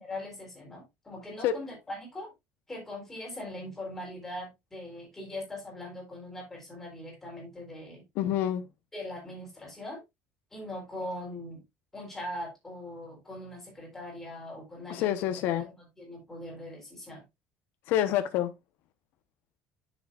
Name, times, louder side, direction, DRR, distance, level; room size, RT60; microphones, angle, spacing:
voice 1, 0.0-2.3 2.7-8.0 8.9-10.0 10.5-11.6 11.9-15.7 16.0-17.2, left 1 dB, 10° left, 3.8 m, -41 dB
voice 2, 8.1-8.7 14.9-15.7 17.9-18.5, left 11 dB, 60° left, 1.0 m, -27 dB
9.7 x 6.7 x 2.4 m
cardioid pair, 170°, 4 cm